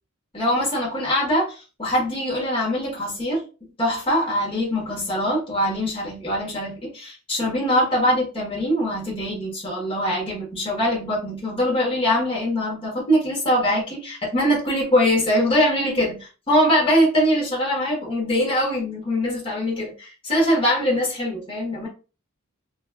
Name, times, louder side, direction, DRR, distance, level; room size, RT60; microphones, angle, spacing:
voice 1, 0.3-1.5 1.8-3.4 3.8-21.9, equal, 25° left, -3 dB, 1.1 m, -22 dB
3.9 x 2.2 x 2.2 m, 0.33 s
head